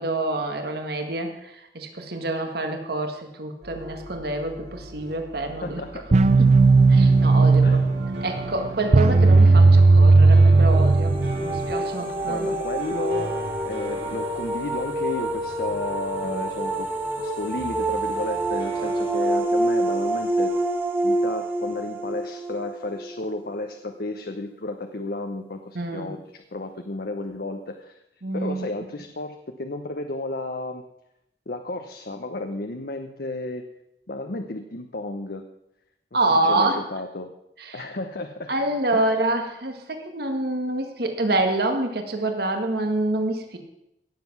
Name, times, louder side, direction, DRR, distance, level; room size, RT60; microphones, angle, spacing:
voice 1, 0.0-5.8 6.4-6.6 6.9-7.8 8.2-12.5 13.0-13.1 16.2-16.4 25.7-26.1 28.2-28.7 36.1-36.8 37.6-37.8 38.5-43.6, right 2 dB, 60° right, 5 dB, 1.7 m, -27 dB
sound 1, 3.6-19.4, right 2 dB, 90° right, 2.6 m, -39 dB
voice 2, 5.6-6.1 7.6-7.8 12.3-16.9 17.2-20.5 21.0-28.0 28.3-30.8 31.5-33.7 34.1-35.4 36.2-37.3 37.7-38.5 38.9-39.0, left 2 dB, 60° left, 6 dB, 0.9 m, -33 dB
sound 2, 6.1-11.7, right 3 dB, 40° right, 0.5 m, -15 dB
sound 3, 10.5-23.4, right 1 dB, 10° right, 1.6 m, -27 dB
17.0 x 7.7 x 6.0 m, 0.84 s
head